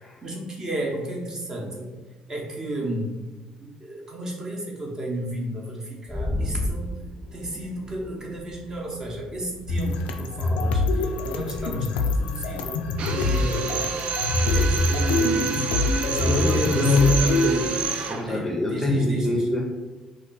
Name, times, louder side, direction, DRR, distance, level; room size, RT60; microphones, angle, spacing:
voice 1, 0.2-1.9 2.3-3.2 3.6-6.9 7.3-13.9 14.4-17.3 18.3-19.4, right 1 dB, 30° right, -2 dB, 0.8 m, -33 dB
sound 1, 6.1-11.7, left 1 dB, 10° right, 1.0 m, -35 dB
sound 2, 9.7-17.5, left 2 dB, 85° left, 0.3 m, -25 dB
Drill, 13.0-18.3, right 6 dB, 60° right, 0.3 m, -29 dB
voice 2, 15.9-19.6, left 2 dB, 15° left, -1 dB, 0.5 m, -24 dB
2.3 x 2.3 x 3.9 m, 1.2 s
cardioid pair, 90°, 2 cm